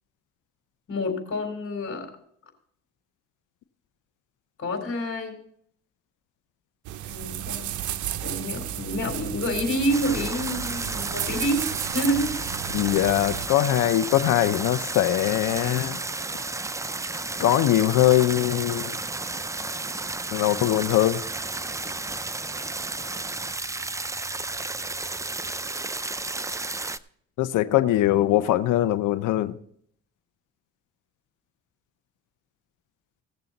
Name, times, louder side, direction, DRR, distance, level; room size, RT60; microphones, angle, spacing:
voice 1, 0.9-2.1 4.6-5.4 7.1-7.7 8.2-12.4, equal, 45° left, 3.7 m, -28 dB
sound 1, 6.8-13.5, right 12 dB, 75° right, 0.6 m, -33 dB
sound 2, 9.9-27.0, right 3 dB, 10° right, 0.4 m, -32 dB
voice 2, 12.7-16.0 17.4-18.9 20.3-21.2 27.4-29.5, left 13 dB, 85° left, 0.7 m, -22 dB
17.5 x 6.8 x 4.0 m
cardioid pair, 90°, 30 cm